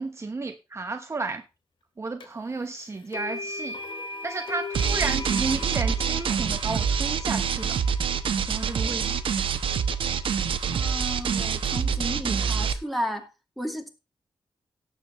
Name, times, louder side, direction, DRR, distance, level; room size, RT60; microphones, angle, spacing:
voice 1, 0.0-1.4 2.0-3.8 4.2-7.8 8.4-9.2, right 3 dB, 30° right, 1.0 m, -32 dB
sound 1, 2.2-2.3 3.1-11.2, left 2 dB, 70° left, 1.9 m, -39 dB
sound 2, 4.7-12.7, right 7 dB, 80° right, 1.0 m, -26 dB
voice 2, 10.7-13.3 13.6-13.9, equal, ahead, 2.5 m, -33 dB
17.5 x 8.2 x 3.1 m
wide cardioid pair, 110°, 9 cm